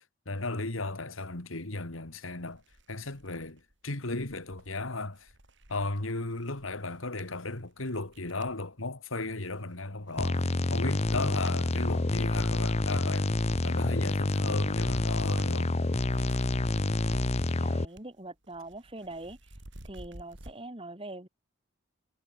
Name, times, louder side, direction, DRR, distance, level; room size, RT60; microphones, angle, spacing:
voice 1, 0.0-2.6 2.9-5.3 5.7-10.4 10.7-13.3 13.6-15.7, left 2 dB, 85° left, 2.5 m, -35 dB
sound 1, 1.9-2.0 2.4-8.6 9.2-9.8 10.1-16.5 16.8-18.2 18.4-20.5, right 1 dB, 60° right, 4.6 m, -52 dB
sound 2, 10.2-17.9, left 2 dB, 30° left, 0.7 m, -28 dB
voice 2, 17.6-19.5 19.8-21.3, right 2 dB, 25° right, 2.2 m, -43 dB
head